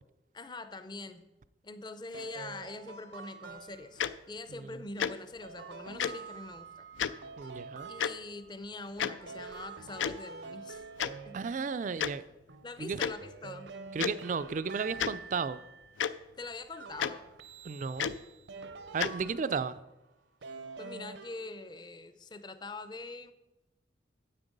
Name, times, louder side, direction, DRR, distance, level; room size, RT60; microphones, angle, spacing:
voice 1, 0.3-1.2 1.6-6.9 7.9-10.8 11.2-11.4 12.6-13.7 16.4-17.3 19.5-19.6 20.8-23.3, left 3 dB, 25° left, 11 dB, 0.5 m, -44 dB
sound 1, 2.1-4.1 5.4-8.6 9.0-12.0 12.5-16.0 16.7-19.8 20.4-21.9, right 4 dB, 75° right, 0.7 m, -47 dB
Tick-tock, 4.0-4.1 5.0-5.1 6.0-6.1 7.0-7.1 8.0-8.1 9.0-9.1 10.0-10.2 11.0-11.1 12.0-12.1 13.0-13.1 14.0-14.1 15.0-15.1 16.0-16.1 17.0-17.1 18.0-18.2 19.0-19.1, left 8 dB, 90° left, 0.4 m, -30 dB
voice 2, 7.4-7.9 11.3-12.2 12.8-13.0 13.9-15.6 17.6-18.1 18.9-19.8, right 5 dB, 45° right, 14 dB, 0.3 m, -34 dB
9.9 x 7.7 x 5.2 m, 0.97 s
head